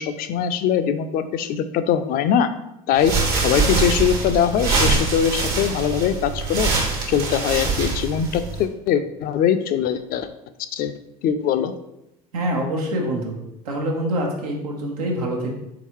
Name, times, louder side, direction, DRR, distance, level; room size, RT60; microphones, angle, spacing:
voice 1, 0.0-2.5 2.9-3.1 3.4-6.7 7.1-10.3 10.7-10.9 11.2-11.7, left 8 dB, 55° left, 10 dB, 0.4 m, -21 dB
sound 1, 2.9-8.6, right 4 dB, 60° right, 1.2 m, -23 dB
voice 2, 12.3-13.4 13.6-15.5, right 1 dB, 85° right, 0 dB, 0.9 m, -25 dB
3.9 x 3.7 x 3.0 m, 0.85 s
hypercardioid pair, 75°, 18 cm